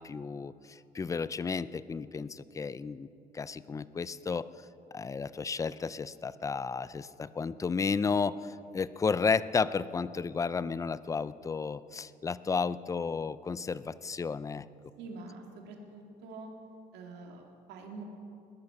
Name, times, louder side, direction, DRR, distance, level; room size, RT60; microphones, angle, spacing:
voice 1, 0.0-3.1 3.3-4.5 4.9-14.7, left 5 dB, 20° left, 17 dB, 0.4 m, -32 dB
voice 2, 15.0-16.5 16.9-18.0, right 3 dB, 85° right, 1 dB, 2.5 m, -45 dB
19.5 x 10.5 x 5.9 m, 2.7 s
cardioid pair, 110°, 17 cm